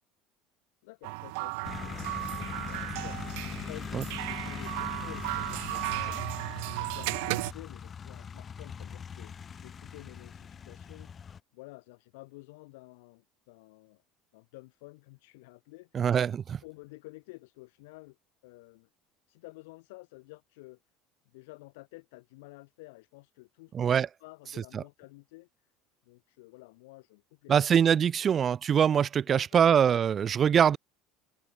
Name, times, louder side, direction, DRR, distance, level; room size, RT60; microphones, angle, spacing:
voice 1, 0.8-11.3 11.5-14.0 14.3-16.1 16.6-18.2 18.4-18.9 19.3-20.8 21.3-25.7 26.0-27.7 28.2-28.3 29.3-29.7, left 24 dB, 90° left, 4.2 m, -51 dB
sound 1, 1.0-7.5, right 31 dB, 80° right, 0.8 m, -35 dB
sound 2, 1.6-11.4, left 7 dB, 25° left, 1.0 m, -41 dB
voice 2, 15.9-16.6 23.7-24.1 24.7-24.8 27.5-30.8, right 8 dB, 30° right, 1.3 m, -23 dB
cardioid pair, 135°, 0 cm